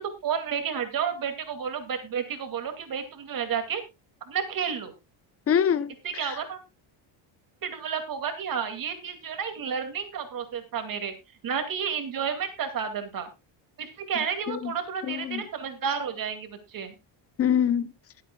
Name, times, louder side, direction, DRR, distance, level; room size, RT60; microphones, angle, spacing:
voice 1, 0.0-3.8 4.3-4.9 6.2-6.6 7.6-11.1 11.4-13.3 13.8-16.9, right 7 dB, 45° right, 2.4 m, -31 dB
voice 2, 5.5-6.4 14.5-14.7 15.0-15.4 17.4-17.9, left 8 dB, 30° left, 0.7 m, -25 dB
21.0 x 8.3 x 2.3 m
cardioid pair, 150°, 48 cm